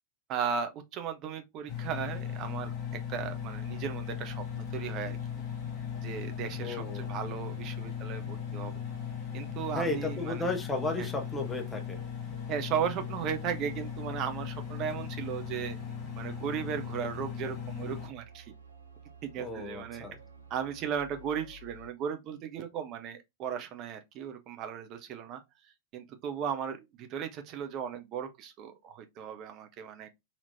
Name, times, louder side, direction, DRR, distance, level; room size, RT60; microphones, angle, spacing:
voice 1, 0.3-5.2 6.0-8.8 9.3-10.5 11.0-11.1 12.5-15.8 16.2-18.5 19.2-20.1 20.5-25.4 25.9-30.1, right 8 dB, 35° right, 0.6 m, -36 dB
Engine, 1.7-18.1, left 8 dB, 35° left, 1.3 m, -38 dB
sound 1, 3.2-21.9, right 4 dB, 80° right, 0.7 m, -52 dB
voice 2, 6.6-7.1 9.7-12.0 19.4-20.2, left 2 dB, 15° left, 0.8 m, -34 dB
4.2 x 2.8 x 2.6 m
figure-of-eight pair, 90°, 0 cm